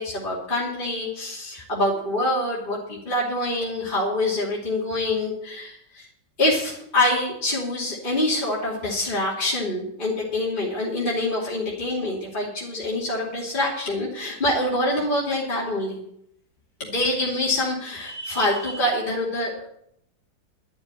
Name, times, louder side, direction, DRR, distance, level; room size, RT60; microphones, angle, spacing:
voice 1, 0.0-6.1 6.4-16.0 16.8-19.7, left 1 dB, 25° left, -5 dB, 3.1 m, -25 dB
12.0 x 7.1 x 9.6 m, 0.70 s
omnidirectional pair, 2.2 m